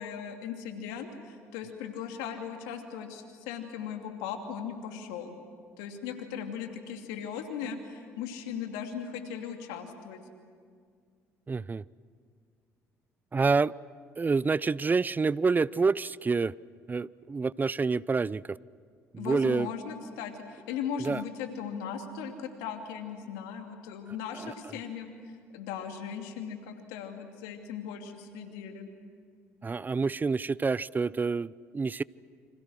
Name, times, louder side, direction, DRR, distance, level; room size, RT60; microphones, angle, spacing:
voice 1, 0.0-5.4 5.8-10.2 19.2-25.1 25.5-28.9, left 7 dB, 80° left, 4 dB, 2.7 m, -38 dB
voice 2, 11.5-11.8 13.3-13.7 14.2-16.5 16.9-18.6 19.1-19.7 21.0-21.2 24.3-24.8 29.6-32.0, right 4 dB, 25° right, 22 dB, 0.6 m, -28 dB
29.0 x 26.0 x 6.4 m, 2.1 s
hypercardioid pair, 60°, 7 cm